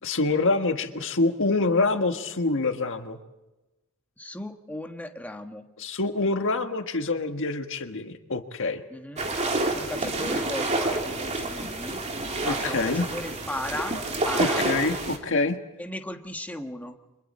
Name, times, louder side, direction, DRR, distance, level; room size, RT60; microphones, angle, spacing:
voice 1, 0.0-3.2 5.8-8.8 12.5-13.0 14.4-15.6, left 3 dB, 60° left, 6 dB, 1.6 m, -26 dB
voice 2, 4.2-5.7 8.9-9.3 9.7-12.1 12.4-14.0 14.2-14.7 15.8-17.0, left 1 dB, 5° left, 4 dB, 1.4 m, -36 dB
sound 1, 9.2-15.2, right 2 dB, 30° right, 2.8 m, -28 dB
29.5 x 25.5 x 4.3 m, 1.0 s
head